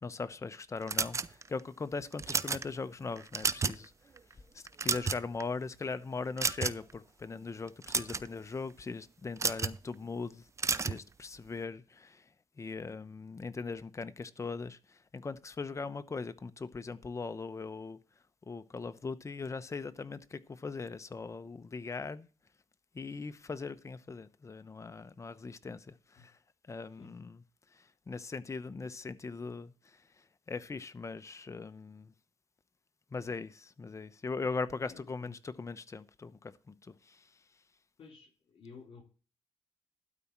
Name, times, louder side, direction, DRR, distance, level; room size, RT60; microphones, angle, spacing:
voice 1, 0.0-3.9 4.5-10.5 10.8-12.2 12.6-18.0 18.5-22.3 22.9-26.4 26.7-27.4 27.7-30.0 30.5-32.1 33.1-37.2, left 4 dB, 30° left, 0.8 m, -40 dB
sound 1, 0.9-1.6 2.1-2.6 3.2-3.8 4.2-4.3 4.7-5.4 6.4-6.9 7.7-8.3 9.4-9.8 10.6-11.0, right 4 dB, 30° right, 0.5 m, -31 dB
voice 2, 34.8-35.3 38.0-39.0, left 4 dB, 60° left, 4.5 m, -53 dB
12.5 x 4.3 x 7.2 m
cardioid pair, 90°, 10 cm